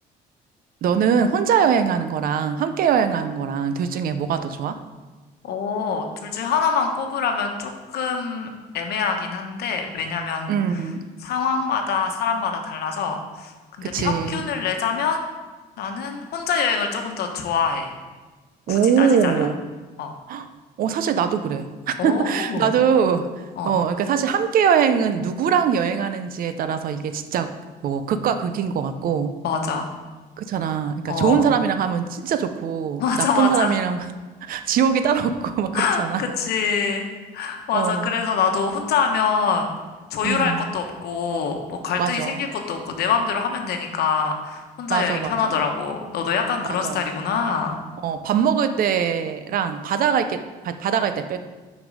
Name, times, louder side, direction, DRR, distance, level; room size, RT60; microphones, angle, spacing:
voice 1, 0.8-4.8 10.5-11.1 13.8-14.5 18.7-19.6 20.3-20.5 20.8-27.5 27.8-29.3 30.4-34.1 34.4-36.2 37.7-38.1 40.2-40.7 42.0-42.4 44.9-45.6 46.7-47.1 48.0-51.4, right 7 dB, 60° right, 9 dB, 0.6 m, -22 dB
voice 2, 5.4-8.5 8.7-10.5 11.2-13.5 13.8-15.2 15.8-17.9 18.7-19.5 20.0-20.1 22.0-22.7 23.6-23.7 29.4-29.9 31.1-31.4 33.0-33.8 35.7-37.1 37.3-39.7 40.1-47.8, left 6 dB, 70° left, 4 dB, 1.1 m, -25 dB
6.0 x 5.3 x 5.2 m, 1.3 s
cardioid pair, 110°, 17 cm